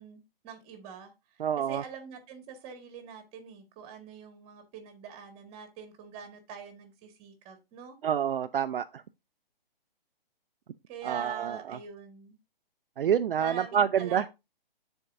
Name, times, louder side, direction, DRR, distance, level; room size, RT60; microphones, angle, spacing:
voice 1, 0.0-7.9 10.9-12.4 13.4-14.3, right 7 dB, 20° right, 1.6 m, -44 dB
voice 2, 1.4-1.8 8.0-9.0 11.0-11.8 13.0-14.2, right 8 dB, 65° right, 0.5 m, -28 dB
12.5 x 4.5 x 2.5 m
hypercardioid pair, 145°, 30 cm